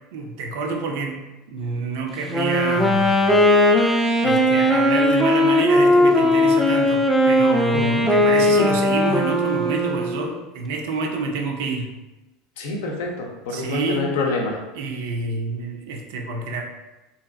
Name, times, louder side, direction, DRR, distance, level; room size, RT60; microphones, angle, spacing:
voice 1, 0.1-3.4 4.2-11.9 13.5-14.2 14.7-16.6, right 3 dB, 65° right, 2 dB, 0.4 m, -28 dB
Wind instrument woodwind instrument, 2.2-10.3, left 1 dB, 5° left, 0.4 m, -18 dB
voice 2, 7.7-8.0 12.6-14.6, left 3 dB, 65° left, 1 dB, 0.5 m, -27 dB
2.8 x 2.5 x 2.3 m, 1.0 s
figure-of-eight pair, 75°, 0 cm